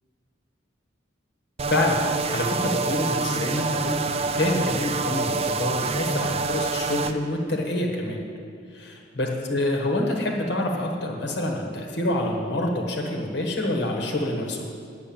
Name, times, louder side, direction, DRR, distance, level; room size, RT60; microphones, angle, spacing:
sound 1, 1.6-7.1, right 4 dB, 30° right, 0.4 m, -27 dB
voice 1, 1.7-8.2 8.7-8.8 9.2-14.7, left 1 dB, 60° left, 0 dB, 1.4 m, -26 dB
8.8 x 6.9 x 8.6 m, 2.2 s
head